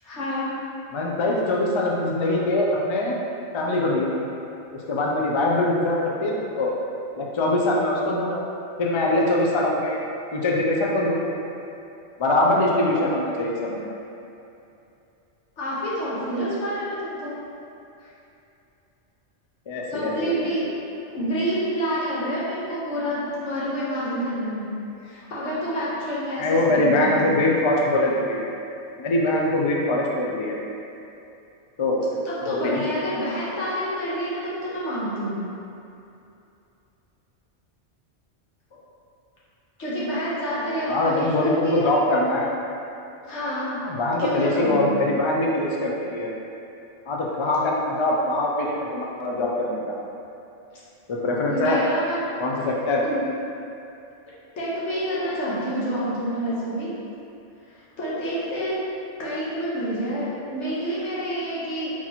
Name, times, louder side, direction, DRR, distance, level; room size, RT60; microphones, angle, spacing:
voice 1, 0.0-0.6 15.6-17.3 18.0-18.1 19.9-20.7 21.1-24.7 25.0-27.4 32.2-35.5 39.8-42.0 43.2-43.8 44.2-44.9 50.7-50.8 51.5-52.2 53.0-53.2 54.5-56.9 58.0-58.8 59.2-61.9, equal, 85° left, -8 dB, 1.4 m, -28 dB
voice 2, 0.9-3.2 3.5-4.2 4.7-6.7 7.1-8.4 8.8-11.3 12.2-13.9 19.7-20.5 26.4-28.4 29.0-30.6 31.8-32.0 32.4-32.8 40.9-42.5 43.8-46.3 47.1-49.9 51.1-51.8 52.4-53.0, left 1 dB, 45° left, -2 dB, 0.4 m, -23 dB
4.3 x 4.1 x 2.9 m, 2.7 s
omnidirectional pair, 1.2 m